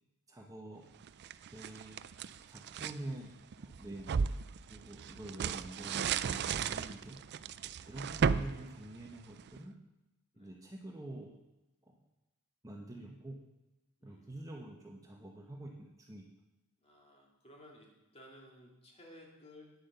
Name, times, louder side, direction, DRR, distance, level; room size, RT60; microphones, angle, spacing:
voice 1, 0.3-0.8 1.5-2.0 2.5-4.3 4.7-7.2 7.9-9.7 10.4-11.3 12.6-13.4 14.0-16.3, right 1 dB, 15° right, 0 dB, 1.0 m, -47 dB
sound 1, 1.0-3.0 3.5-9.6, right 6 dB, 50° right, 0.4 m, -35 dB
voice 2, 7.8-8.2 10.3-10.5 14.0-14.5 16.8-19.7, left 1 dB, 25° left, -1 dB, 2.4 m, -58 dB
9.9 x 7.9 x 6.8 m, 0.98 s
head